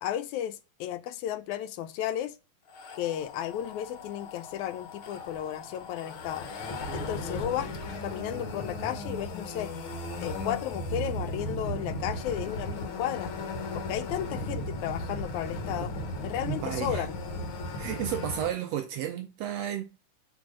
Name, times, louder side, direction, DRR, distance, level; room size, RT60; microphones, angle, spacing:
voice 1, 0.0-2.3 3.0-6.5 6.9-7.7 8.0-9.7 10.2-13.3 13.7-15.9 16.2-17.2, left 11 dB, 80° left, 2.0 m, -34 dB
sound 1, 2.7-18.5, left 1 dB, 60° left, 1.5 m, -36 dB
voice 2, 16.5-17.1 17.8-19.8, right 10 dB, 75° right, 1.6 m, -32 dB
7.3 x 3.6 x 6.3 m
omnidirectional pair, 3.5 m